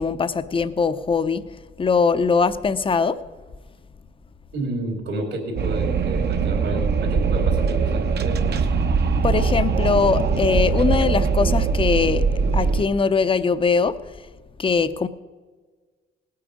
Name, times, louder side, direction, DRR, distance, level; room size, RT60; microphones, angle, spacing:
voice 1, 0.0-1.4 1.8-3.2 9.2-12.3 12.5-14.0 14.6-15.1, left 5 dB, 25° left, 12 dB, 0.6 m, -21 dB
voice 2, 4.5-8.7, right 2 dB, 75° right, -5 dB, 3.1 m, -30 dB
Wind, 5.6-12.8, right 5 dB, 55° right, 1.0 m, -21 dB
18.5 x 8.6 x 5.1 m, 1.4 s
cardioid pair, 90°, 20 cm